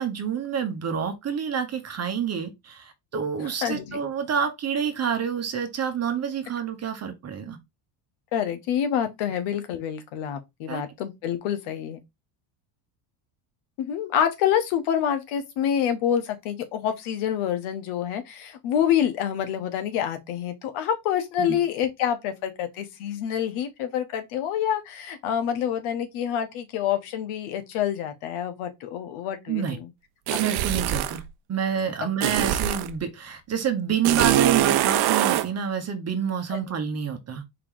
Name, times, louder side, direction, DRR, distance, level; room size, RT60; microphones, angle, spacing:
voice 1, 0.0-7.6 10.7-10.8 21.4-21.6 29.5-29.8 30.3-31.2 31.5-37.4, right 7 dB, 30° right, 1.0 m, -28 dB
voice 2, 3.6-4.0 8.3-12.0 13.8-29.9 30.3-30.4 36.5-36.6, left 9 dB, 75° left, 1.3 m, -27 dB
sound 1, 30.3-31.2 32.2-32.9 34.0-35.5, right 13 dB, 50° right, 0.6 m, -23 dB
4.6 x 2.9 x 3.7 m
cardioid pair, 125°, 49 cm